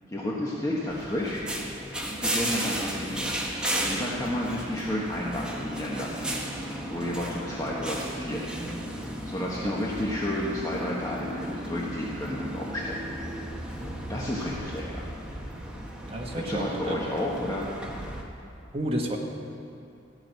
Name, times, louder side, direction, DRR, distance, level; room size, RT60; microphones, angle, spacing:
voice 1, 0.1-1.4 2.2-3.3 3.9-6.3 6.9-8.4 9.2-13.0 14.1-15.0 16.4-17.7, left 1 dB, 20° left, -5 dB, 1.2 m, -31 dB
sound 1, 0.9-18.2, right 1 dB, 5° right, 1.3 m, -35 dB
voice 2, 16.1-17.0 18.7-19.2, equal, 30° right, 0 dB, 1.5 m, -31 dB
15.0 x 6.3 x 9.1 m, 2.5 s
head